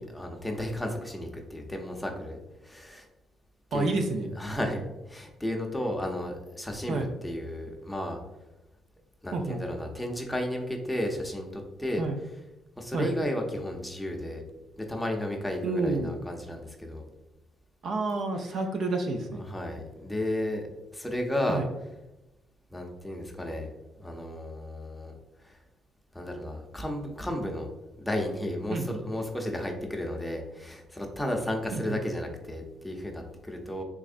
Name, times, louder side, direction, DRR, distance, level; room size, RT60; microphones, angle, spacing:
voice 1, 0.0-3.1 3.7-4.0 4.4-4.8 5.1-8.2 9.2-12.1 12.8-14.4 14.8-17.0 19.5-21.6 22.7-23.7 23.9-25.1 25.4-25.6 26.1-27.7 28.0-33.8, left 1 dB, 5° left, 2 dB, 0.6 m, -33 dB
voice 2, 3.7-4.3 6.9-7.1 9.3-9.6 12.0-12.2 12.9-13.1 15.6-16.2 17.8-19.4 21.5-21.7 28.7-29.0 31.7-32.0, right 3 dB, 65° right, 4 dB, 0.4 m, -29 dB
3.5 x 3.1 x 2.5 m, 0.99 s
cardioid pair, 90°, 0 cm